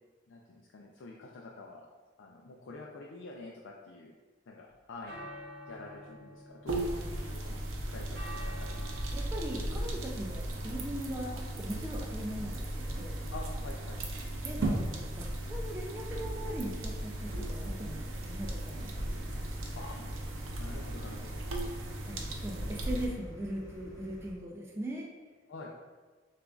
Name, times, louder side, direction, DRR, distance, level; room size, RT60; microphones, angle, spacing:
voice 1, 0.3-1.9 2.2-4.1 4.5-5.3 5.7-8.9 13.3-14.0 19.8-20.1 20.6-21.4 25.5-25.7, left 3 dB, 70° left, -1 dB, 0.4 m, -47 dB
sound 1, 4.7-23.8, equal, 50° right, 0.8 m, -53 dB
sound 2, 6.7-23.1, right 1 dB, 85° right, 0.6 m, -36 dB
voice 2, 9.1-13.2 14.4-18.9 22.0-25.1, right 1 dB, 10° right, -2 dB, 0.3 m, -40 dB
sound 3, 18.7-24.3, equal, 15° left, 0.9 m, -49 dB
6.7 x 2.5 x 2.3 m, 1.3 s
head